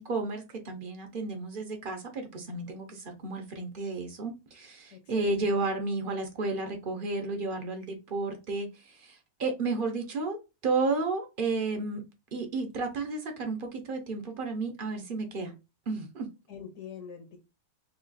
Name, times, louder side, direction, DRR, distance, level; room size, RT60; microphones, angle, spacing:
voice 1, 0.0-10.4 10.6-12.0 12.3-15.5 15.9-16.3, right 3 dB, 50° right, 0.6 m, -32 dB
voice 2, 4.9-5.7 16.5-17.4, left 7 dB, 60° left, 1.0 m, -45 dB
3.1 x 2.4 x 3.8 m
omnidirectional pair, 1.6 m